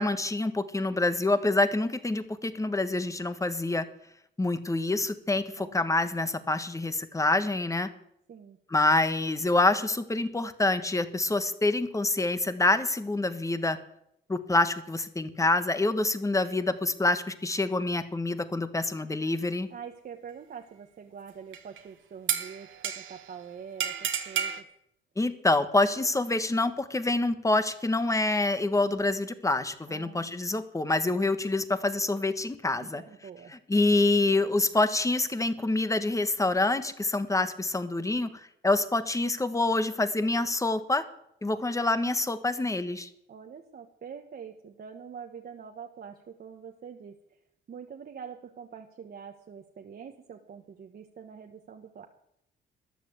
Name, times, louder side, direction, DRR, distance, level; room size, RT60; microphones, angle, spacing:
voice 1, 0.0-3.9 4.4-7.9 8.7-13.8 14.3-19.7 25.2-33.0 33.7-41.0 41.4-43.1, left 2 dB, 15° left, 11 dB, 1.4 m, -26 dB
voice 2, 5.6-5.9 8.3-8.6 19.7-24.7 29.9-30.4 32.8-33.5 43.3-47.2 47.7-52.1, right 7 dB, 50° right, 3 dB, 1.4 m, -45 dB
sound 1, 21.5-21.8 22.3-23.3 23.8-24.6, right 9 dB, 75° right, 1.7 m, -31 dB
13.5 x 10.5 x 8.0 m, 0.74 s
cardioid pair, 90°, 20 cm